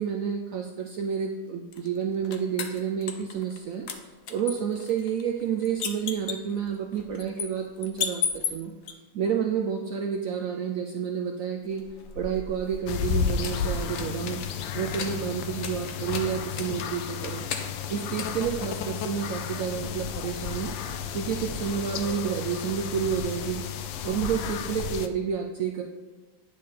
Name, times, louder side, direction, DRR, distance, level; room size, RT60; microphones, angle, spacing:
voice 1, 0.0-3.9 4.3-8.7 9.1-11.8 12.2-14.4 14.7-17.4 17.9-20.7 21.1-23.6 24.0-25.8, right 7 dB, 75° right, 3 dB, 0.7 m, -30 dB
sound 1, 1.7-3.6 3.9-8.9 11.7-19.2, left 6 dB, 60° left, 0.9 m, -37 dB
sound 2, 12.9-25.1, left 7 dB, 90° left, 1.3 m, -32 dB
9.6 x 3.4 x 5.5 m, 1.2 s
omnidirectional pair, 2.0 m